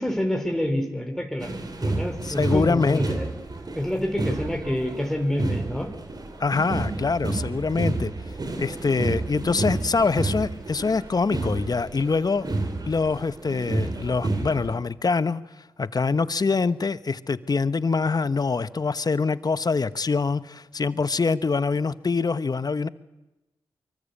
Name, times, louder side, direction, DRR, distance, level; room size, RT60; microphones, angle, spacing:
voice 1, 0.0-3.3 3.7-5.9, left 1 dB, 5° left, 3 dB, 4.9 m, -28 dB
sound 1, 1.4-14.7, right 2 dB, 50° right, 4.7 m, -30 dB
voice 2, 2.2-3.0 6.4-8.1 8.6-12.5 12.9-15.4 15.8-22.9, left 4 dB, 45° left, 15 dB, 1.2 m, -24 dB
24.0 x 24.0 x 8.6 m, 1.0 s
supercardioid pair, 40°, 9 cm